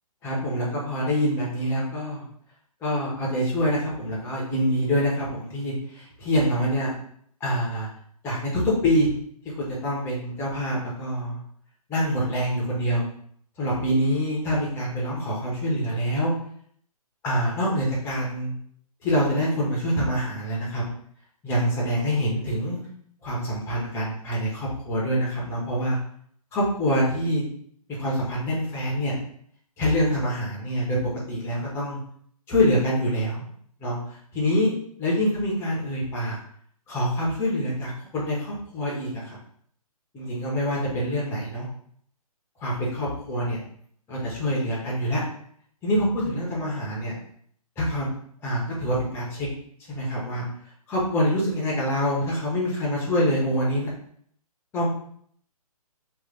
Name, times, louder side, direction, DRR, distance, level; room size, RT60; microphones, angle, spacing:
voice 1, 0.2-2.2 2.8-6.9 7.4-7.9 8.2-9.1 9.6-11.4 11.9-13.0 13.6-16.3 17.2-18.5 19.0-20.9 21.4-22.8 23.2-26.0 26.5-27.4 27.9-29.2 29.8-32.0 32.5-33.5 33.8-36.4 36.9-39.4 40.1-41.7 42.6-43.6 44.1-45.2 45.8-47.1 47.8-48.1 48.4-49.5 49.9-50.4 50.9-53.9 54.7-54.9, equal, 15° left, -5 dB, 0.9 m, -25 dB
3.1 x 2.6 x 3.8 m, 0.63 s
figure-of-eight pair, 140°, 19 cm